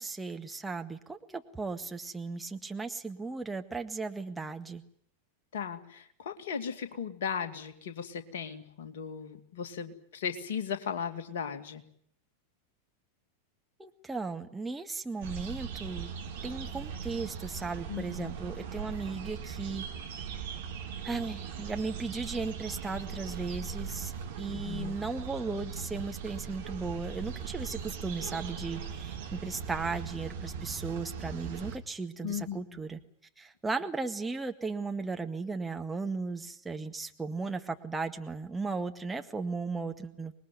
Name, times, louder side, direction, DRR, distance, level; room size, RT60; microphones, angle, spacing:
voice 1, 0.0-4.8 13.8-16.1 16.4-19.8 21.0-24.1 24.4-33.0 33.4-40.3, right 4 dB, 10° right, 5 dB, 1.7 m, -36 dB
voice 2, 5.5-11.8 17.9-18.3 24.5-25.0 32.2-32.8, left 7 dB, 55° left, 8 dB, 2.4 m, -37 dB
sound 1, 15.2-31.8, right 7 dB, 60° right, 2.8 m, -39 dB
25.5 x 20.5 x 9.5 m, 0.67 s
figure-of-eight pair, 90°, 0 cm